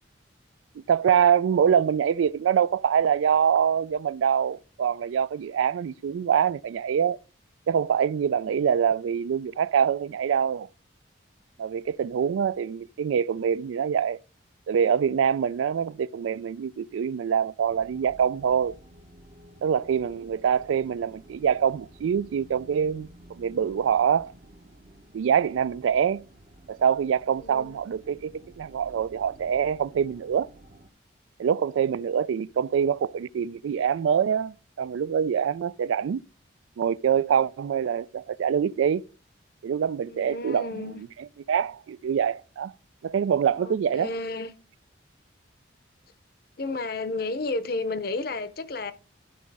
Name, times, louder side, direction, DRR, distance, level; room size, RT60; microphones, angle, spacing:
voice 1, 0.9-7.2 7.7-10.7 11.6-14.2 14.7-18.8 19.6-23.1 23.4-24.3 25.1-26.2 26.7-30.5 31.4-36.2 36.8-39.0 39.6-40.9 41.5-42.7 43.0-44.1, right 8 dB, 85° right, 0.3 m, -25 dB
sound 1, 17.7-30.9, right 1 dB, 40° right, 0.8 m, -52 dB
voice 2, 27.4-27.8 40.0-41.0 43.6-44.5 46.6-48.9, left 3 dB, 50° left, 0.6 m, -32 dB
12.0 x 4.1 x 4.7 m
head